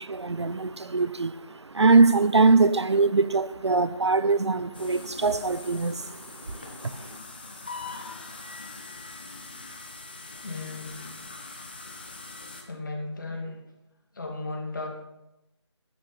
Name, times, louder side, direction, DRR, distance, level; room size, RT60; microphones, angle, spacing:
voice 1, 0.0-7.2, right 3 dB, 65° right, 0.7 m, -23 dB
sound 1, 4.7-12.6, left 3 dB, 20° left, 0.9 m, -42 dB
voice 2, 10.4-11.0 12.7-13.6 14.1-14.9, left 2 dB, 45° left, 2.6 m, -35 dB
11.5 x 9.0 x 5.6 m
figure-of-eight pair, 175°, 15 cm